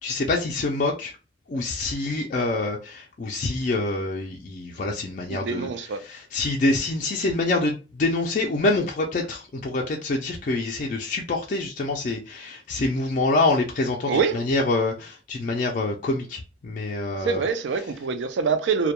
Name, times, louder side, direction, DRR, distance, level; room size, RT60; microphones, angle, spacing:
voice 1, 0.0-1.1 1.5-17.5, left 2 dB, 45° left, 0.3 m, -26 dB
voice 2, 5.3-6.0 14.1-14.4 17.2-18.9, right 5 dB, 75° right, 0.4 m, -25 dB
2.1 x 2.1 x 2.8 m
head